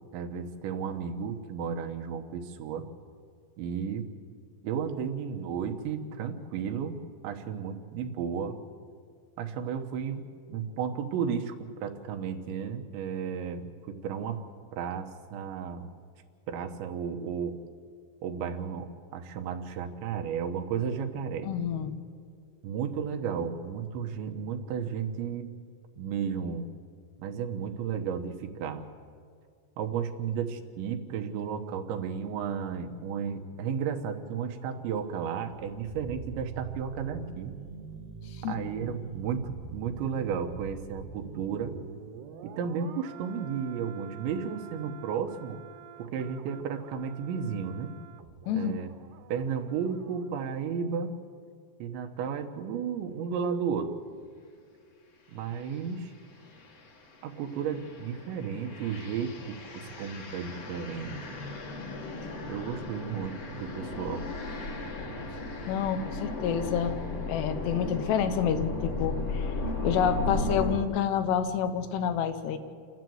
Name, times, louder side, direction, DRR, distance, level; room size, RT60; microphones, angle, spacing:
voice 1, 0.1-2.8 3.6-4.1 4.6-7.0 7.2-8.6 9.4-11.6 11.8-14.4 14.7-15.9 16.5-17.6 18.2-21.5 22.6-25.5 26.0-26.7 27.2-28.8 29.8-37.5 38.5-41.8 42.4-45.6 46.0-47.9 48.5-48.9 49.3-51.1 51.8-54.0 55.3-56.1 57.2-61.4 62.5-64.3, right 7 dB, 90° right, 4 dB, 3.5 m, -33 dB
voice 2, 21.4-21.9 38.4-38.6 48.5-48.8 65.7-67.0 67.3-69.5 69.8-72.6, left 8 dB, 80° left, 9 dB, 3.0 m, -28 dB
sound 1, 35.4-50.3 50.6-50.7, right 6 dB, 75° right, 2.8 m, -46 dB
sound 2, 55.5-55.8 56.3-70.8, left 2 dB, 45° left, 1.9 m, -36 dB
29.0 x 12.5 x 7.8 m, 2.2 s
omnidirectional pair, 5.1 m